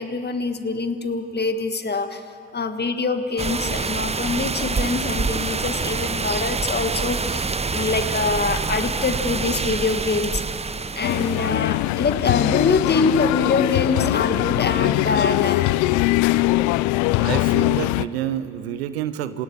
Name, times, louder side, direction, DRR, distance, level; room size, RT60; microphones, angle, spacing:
voice 1, 0.0-2.2 2.5-10.4 11.0-15.6, left 4 dB, 35° left, 8 dB, 1.7 m, -24 dB
sound 1, 3.4-11.5, right 4 dB, 20° right, 0.8 m, -26 dB
sound 2, 11.0-18.1, left 18 dB, 70° left, 0.5 m, -21 dB
voice 2, 17.2-19.4, right 11 dB, 90° right, 14 dB, 0.7 m, -28 dB
27.0 x 17.0 x 7.2 m, 2.5 s
hypercardioid pair, 45°, 30 cm